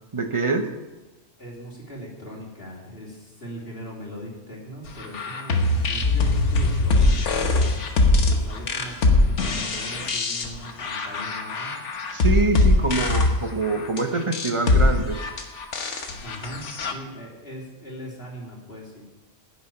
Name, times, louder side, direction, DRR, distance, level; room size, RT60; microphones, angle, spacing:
voice 1, 0.1-0.7 12.1-15.2, right 3 dB, 25° right, 6 dB, 0.9 m, -25 dB
voice 2, 1.4-7.7 8.1-11.7 12.6-12.9 16.2-19.0, equal, 45° left, -3 dB, 3.4 m, -40 dB
sound 1, 5.0-16.9, left 2 dB, 65° left, 1.5 m, -22 dB
10.5 x 7.4 x 9.0 m, 1.1 s
omnidirectional pair, 1.3 m